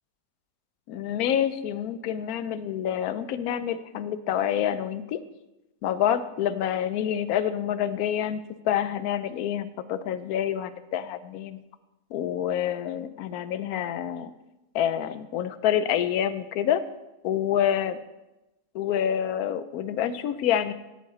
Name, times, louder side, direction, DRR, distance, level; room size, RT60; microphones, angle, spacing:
voice 1, 0.9-5.2 5.8-8.4 8.6-11.6 12.1-14.3 14.7-16.8 17.2-18.0 18.7-20.7, left 10 dB, 80° left, 14 dB, 1.0 m, -27 dB
10.5 x 7.3 x 4.2 m, 0.99 s
omnidirectional pair, 1.6 m